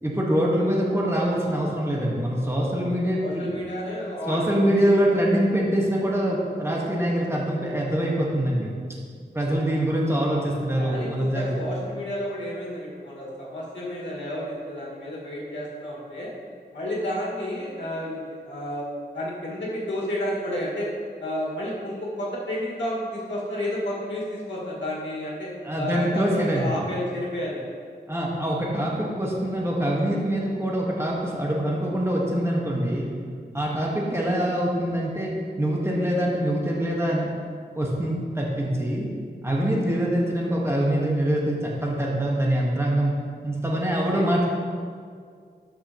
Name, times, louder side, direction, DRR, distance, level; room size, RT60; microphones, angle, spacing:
voice 1, 0.0-3.6 4.2-8.7 9.3-11.5 25.6-26.6 28.1-33.1 33.5-37.3 37.7-39.1 39.4-43.1 43.4-44.5, right 1 dB, 15° right, -3 dB, 1.5 m, -24 dB
voice 2, 3.2-4.6 9.5-9.6 10.8-16.3 16.7-18.9 19.1-20.9 21.2-25.5 25.8-27.7 44.1-44.3, left 1 dB, 90° left, -6 dB, 1.9 m, -31 dB
12.0 x 5.5 x 3.0 m, 2.1 s
wide cardioid pair, 55°, 18 cm